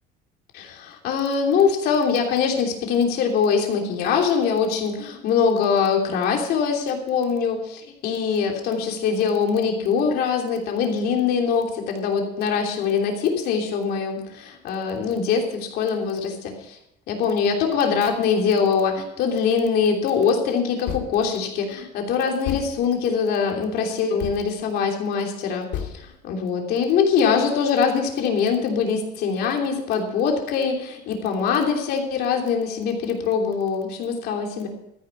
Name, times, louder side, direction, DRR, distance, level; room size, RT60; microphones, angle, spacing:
voice 1, 0.5-16.8 17.1-34.7, left 6 dB, 60° left, 2 dB, 3.1 m, -23 dB
sound 1, 20.9-21.3 21.7-21.8 22.4-22.9 24.2-24.4 25.7-26.0, left 10 dB, 75° left, 2.4 m, -31 dB
14.0 x 10.5 x 5.8 m, 0.82 s
cardioid pair, 150°, 19 cm